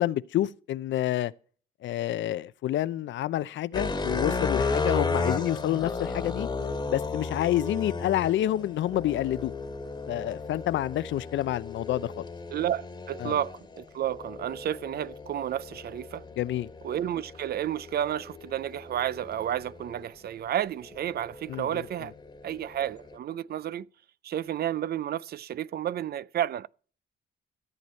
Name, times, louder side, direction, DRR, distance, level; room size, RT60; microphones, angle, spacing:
voice 1, 0.0-1.3 1.8-6.5 6.9-9.5 10.1-12.3 13.2-13.4 16.4-16.7 21.5-21.8, left 13 dB, 70° left, 0.5 m, -28 dB
sound 1, 3.7-20.0 20.7-23.2, left 3 dB, 20° left, 1.5 m, -34 dB
voice 2, 12.5-16.2 16.8-22.1 22.4-23.9 24.2-26.7, right 11 dB, 50° right, 0.4 m, -31 dB
14.0 x 7.9 x 4.2 m
cardioid pair, 90°, 20 cm